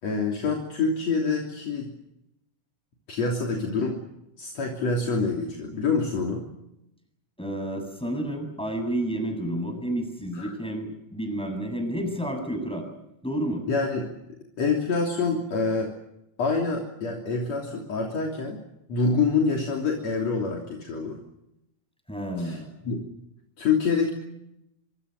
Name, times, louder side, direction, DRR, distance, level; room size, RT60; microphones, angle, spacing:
voice 1, 0.0-1.9 3.1-4.0 4.4-6.5 10.3-10.5 13.7-14.2 14.6-15.9 16.4-18.6 18.9-21.2 22.4-22.6 22.8-23.0 23.6-24.1, left 4 dB, 55° left, 1 dB, 4.4 m, -26 dB
voice 2, 7.4-12.9 13.2-13.6 22.1-22.7, right 1 dB, ahead, 5 dB, 7.3 m, -30 dB
26.5 x 25.5 x 6.7 m, 0.85 s
omnidirectional pair, 3.6 m